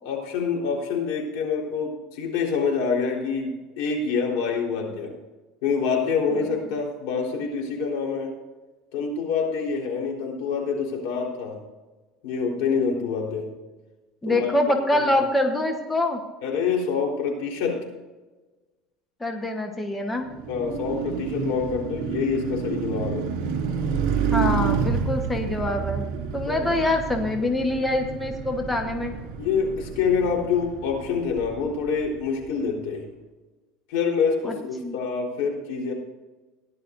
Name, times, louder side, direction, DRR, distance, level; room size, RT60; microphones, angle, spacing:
voice 1, 0.0-5.1 5.6-8.3 8.9-11.6 12.2-13.5 14.3-15.2 16.4-17.8 20.5-23.3 26.5-26.8 29.0-29.1 29.4-33.1 33.9-35.9, left 5 dB, 75° left, 0 dB, 3.8 m, -26 dB
voice 2, 14.2-16.2 19.2-20.3 24.3-26.1 26.3-29.2 34.4-34.5 34.8-35.0, left 1 dB, 10° left, 3 dB, 1.2 m, -25 dB
Car passing by, 20.2-32.5, right 6 dB, 65° right, 2.5 m, -29 dB
17.5 x 11.0 x 2.6 m, 1.2 s
cardioid pair, 145°, 0 cm